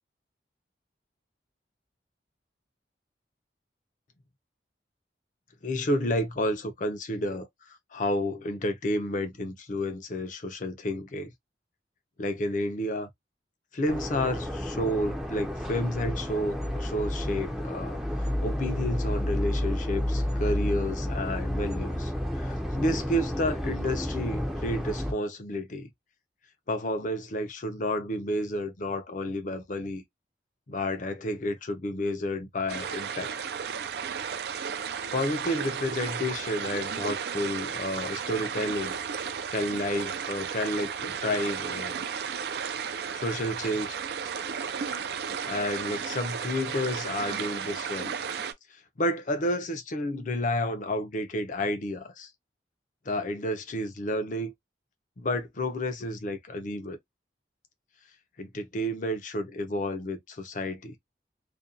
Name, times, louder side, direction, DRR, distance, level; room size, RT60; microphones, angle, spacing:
voice 1, 5.6-11.3 12.2-13.1 13.7-25.9 26.7-30.0 30.7-33.4 35.1-39.0 39.5-42.0 43.1-44.0 45.4-48.1 48.7-52.3 53.1-54.5 55.2-57.0 58.4-61.0, left 1 dB, 45° left, 0.6 m, -31 dB
sound 1, 13.9-25.1, left 1 dB, 5° right, 0.5 m, -31 dB
sound 2, 32.7-48.5, right 7 dB, 60° right, 0.4 m, -34 dB
2.5 x 2.2 x 2.5 m
head